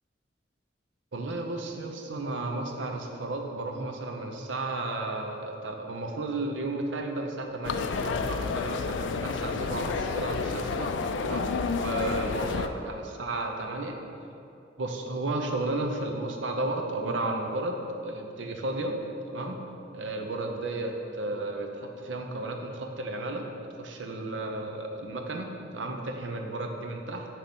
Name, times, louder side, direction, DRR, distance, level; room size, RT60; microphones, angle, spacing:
voice 1, 1.1-14.0 14.8-19.0 19.2-19.6 19.9-23.5 23.8-27.3, right 2 dB, 85° right, 3 dB, 0.7 m, -33 dB
sound 1, 7.6-12.7, left 4 dB, 75° left, 0.3 m, -30 dB
9.0 x 3.0 x 5.3 m, 2.7 s
head